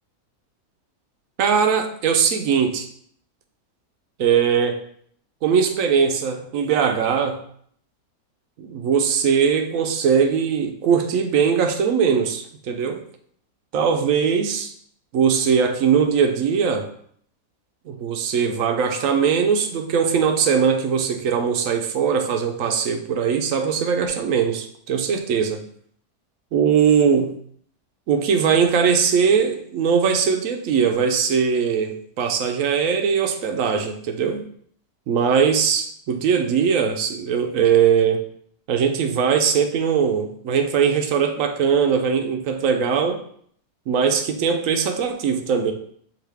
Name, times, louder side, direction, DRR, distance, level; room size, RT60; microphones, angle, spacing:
voice 1, 1.4-2.9 4.2-4.9 5.4-7.4 8.6-13.0 13.7-14.7 15.1-16.9 17.9-25.6 26.5-27.4 28.1-34.4 35.1-38.2 38.7-43.2 43.9-45.7, right 6 dB, 70° right, 6 dB, 0.9 m, -20 dB
5.9 x 2.6 x 3.4 m, 0.62 s
omnidirectional pair, 1.6 m